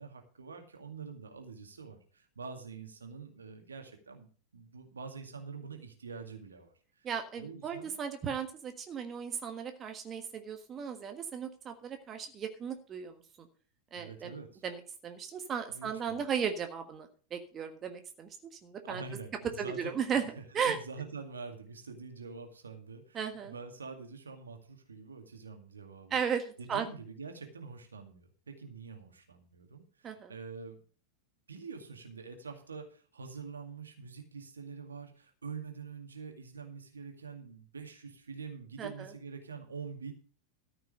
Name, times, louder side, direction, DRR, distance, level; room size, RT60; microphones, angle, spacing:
voice 1, 0.0-6.7 7.4-7.9 13.9-14.6 15.7-16.3 18.8-20.0 20.4-26.2 26.6-30.8 31.5-40.1, right 5 dB, 75° right, 4 dB, 2.2 m, -45 dB
voice 2, 7.0-13.5 13.9-14.3 14.6-18.3 18.6-19.0 19.6-20.2 20.5-20.8 23.1-23.5 26.1-26.9 30.0-30.3 38.8-39.1, right 7 dB, 25° right, 6 dB, 1.5 m, -36 dB
13.5 x 6.1 x 6.4 m, 0.41 s
figure-of-eight pair, 90°, 0 cm